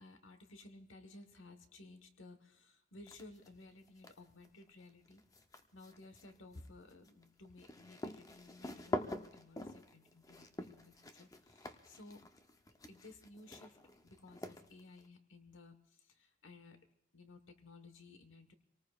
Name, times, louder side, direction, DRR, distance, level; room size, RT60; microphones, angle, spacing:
voice 1, 0.0-5.2 5.7-12.2 12.9-13.8 14.0-16.8 17.1-18.5, left 2 dB, 70° left, 7 dB, 1.3 m, -57 dB
sound 1, 3.1-3.5 3.9-15.1, left 1 dB, 15° left, 0.7 m, -46 dB
26.5 x 19.0 x 2.4 m, 0.73 s
head